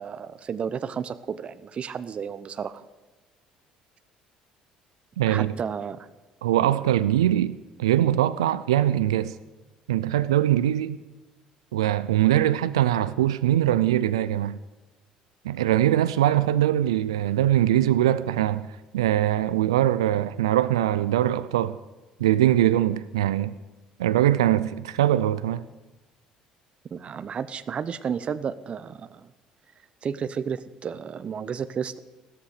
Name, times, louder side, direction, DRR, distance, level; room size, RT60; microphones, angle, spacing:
voice 1, 0.0-2.8 5.3-6.1 26.9-29.3 30.0-32.0, right 7 dB, 45° right, 0.8 m, -32 dB
voice 2, 5.2-5.5 6.4-7.5 7.8-9.4 9.9-11.0 11.7-14.6 15.4-21.8 22.2-23.5 24.0-25.6, right 12 dB, 90° right, 0.4 m, -22 dB
16.0 x 13.0 x 6.6 m
hypercardioid pair, 65°, 3 cm